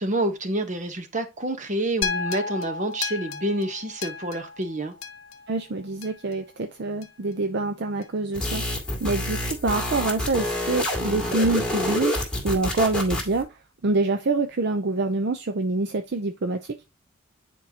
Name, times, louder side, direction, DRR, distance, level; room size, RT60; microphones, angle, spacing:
voice 1, 0.0-4.9, right 1 dB, 35° right, 1.0 m, -28 dB
sound 1, 2.0-6.3 7.0-7.1, left 5 dB, 65° left, 1.0 m, -33 dB
voice 2, 5.5-8.6 9.0-13.6 13.8-16.7, right 3 dB, 50° right, 0.5 m, -26 dB
sound 2, 8.3-13.4, left 1 dB, 5° left, 2.3 m, -28 dB
9.6 x 4.6 x 2.8 m
head